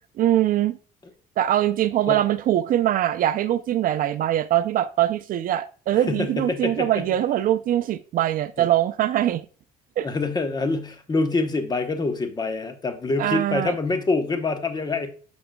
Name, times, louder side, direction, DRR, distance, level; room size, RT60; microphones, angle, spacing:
voice 1, 0.2-0.8 1.4-9.4 10.0-10.1 13.2-13.7, right 12 dB, 55° right, 0.4 m, -22 dB
voice 2, 5.9-7.2 8.6-8.7 10.0-15.1, left 3 dB, 25° left, 0.9 m, -26 dB
8.9 x 6.0 x 2.2 m
cardioid pair, 110°, 17 cm